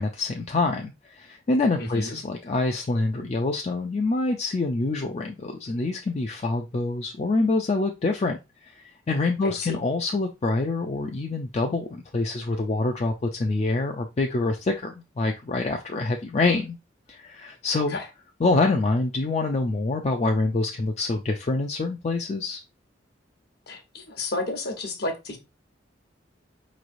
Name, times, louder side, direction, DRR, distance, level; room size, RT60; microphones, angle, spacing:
voice 1, 0.0-16.8 17.1-18.0 18.4-22.6, left 3 dB, 35° left, 0.4 m, -26 dB
voice 2, 1.8-2.2 9.4-9.8 17.9-18.1 23.7-25.4, left 2 dB, 60° left, 1.0 m, -31 dB
4.8 x 3.1 x 2.5 m
head